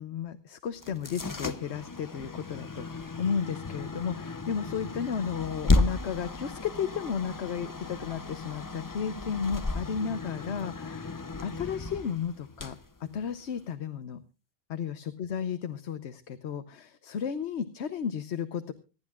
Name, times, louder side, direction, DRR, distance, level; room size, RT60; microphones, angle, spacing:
voice 1, 0.0-14.2 14.7-18.7, left 7 dB, 75° left, 11 dB, 1.1 m, -34 dB
sound 1, 0.8-13.7, left 3 dB, 25° left, 0.6 m, -33 dB
25.5 x 10.5 x 2.3 m, 0.32 s
omnidirectional pair, 1.2 m